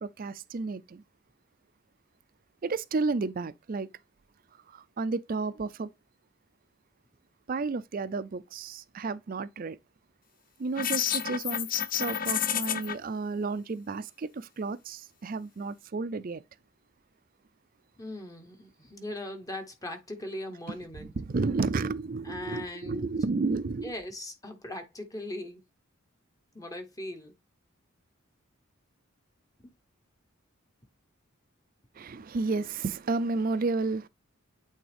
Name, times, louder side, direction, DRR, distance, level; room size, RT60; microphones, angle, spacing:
voice 1, 0.0-1.0 2.6-3.9 4.7-5.9 7.5-9.8 10.6-11.7 12.0-16.4 21.0-23.9 32.0-34.1, right 3 dB, 40° right, 0.4 m, -32 dB
sound 1, 10.8-12.9, left 9 dB, 40° left, 0.5 m, -29 dB
voice 2, 18.0-21.1 22.2-23.1 23.8-25.6 26.5-27.3, left 1 dB, 15° left, 0.8 m, -39 dB
8.6 x 3.5 x 3.4 m
head